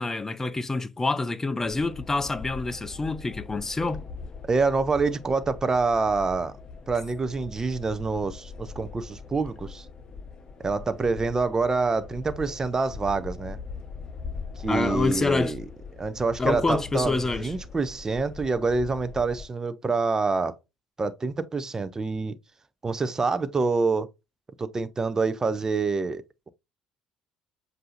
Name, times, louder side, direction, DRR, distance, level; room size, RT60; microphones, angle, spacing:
voice 1, 0.0-4.0 14.7-15.6 16.4-17.5, left 3 dB, 20° left, 0.5 m, -27 dB
sound 1, 1.6-19.5, left 4 dB, 35° left, 1.0 m, -41 dB
voice 2, 4.5-6.6 6.9-9.9 10.6-13.6 14.6-15.6 16.0-20.6 21.0-22.4 22.8-24.1 24.6-26.5, right 4 dB, 25° right, 0.6 m, -26 dB
7.5 x 2.7 x 2.5 m
hypercardioid pair, 60°, 2 cm